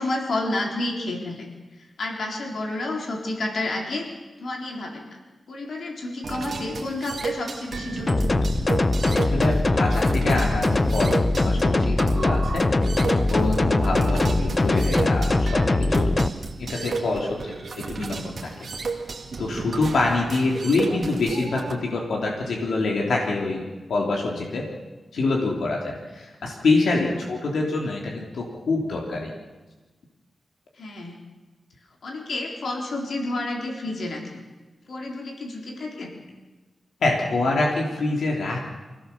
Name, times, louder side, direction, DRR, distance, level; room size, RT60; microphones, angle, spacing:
voice 1, 0.0-4.1 4.4-5.2 5.5-8.3 17.4-17.6 30.7-31.2 32.0-34.4 34.9-36.2, left 2 dB, 60° left, 1 dB, 3.9 m, -30 dB
sound 1, 6.2-21.7, right 4 dB, 50° right, 2.6 m, -33 dB
sound 2, 8.1-16.3, left 2 dB, 25° left, 0.7 m, -21 dB
voice 2, 9.2-11.2 11.4-12.7 13.3-16.3 16.6-17.4 17.7-18.5 19.4-23.6 23.9-24.7 25.1-29.3 37.0-38.7, left 3 dB, 80° left, -1 dB, 3.3 m, -25 dB
25.0 x 17.5 x 7.1 m, 1.3 s
wide cardioid pair, 160°, 0 cm